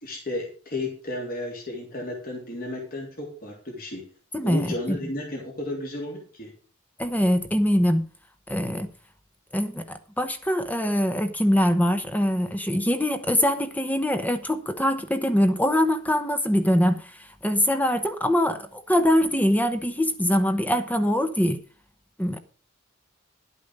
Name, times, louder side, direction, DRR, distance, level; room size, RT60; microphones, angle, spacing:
voice 1, 0.0-4.0 4.4-6.5, left 1 dB, 45° left, 3.4 m, -33 dB
voice 2, 4.3-5.0 7.0-8.0 8.5-8.9 9.5-9.8 10.2-17.1 17.4-21.6 22.2-22.4, equal, 10° left, 1.0 m, -23 dB
11.5 x 8.3 x 5.4 m
head